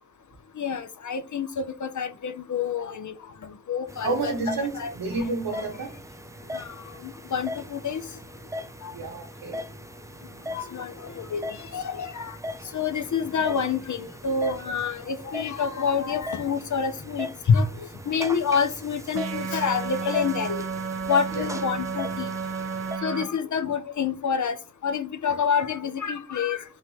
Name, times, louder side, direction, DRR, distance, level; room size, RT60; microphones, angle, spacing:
voice 1, 0.6-3.1 3.7-4.3 4.7-4.9 5.2-5.3 6.5-8.0 8.8-8.9 10.5-12.4 12.7-17.7 18.1-20.7 21.1-22.3 23.0-26.6, left 6 dB, 50° left, 0.9 m, -27 dB
sound 1, 3.9-23.0, left 1 dB, 10° right, 0.4 m, -39 dB
voice 2, 4.0-5.9 8.9-9.6 21.3-21.5, right 3 dB, 65° right, 1.5 m, -30 dB
sound 2, 19.1-23.2, right 5 dB, 35° right, 0.9 m, -32 dB
3.9 x 2.9 x 4.6 m
supercardioid pair, 45°, 38 cm